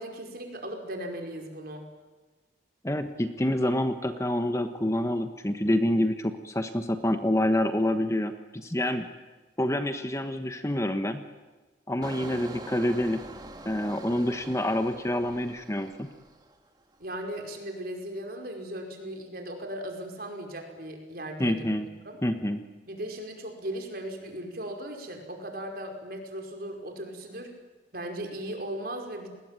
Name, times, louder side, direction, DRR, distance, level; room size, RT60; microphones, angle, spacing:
voice 1, 0.0-1.9 17.0-21.7 22.0-22.2 22.9-27.5 27.9-29.3, right 1 dB, 50° right, 3 dB, 5.3 m, -37 dB
voice 2, 2.8-9.1 9.6-11.2 11.9-13.2 13.6-16.1 21.4-21.9 22.2-22.6, left 1 dB, 15° left, 8 dB, 1.2 m, -27 dB
Engine, 12.0-16.7 17.0-17.4, right 1 dB, 20° right, 2.1 m, -44 dB
30.0 x 20.5 x 9.1 m, 1.3 s
head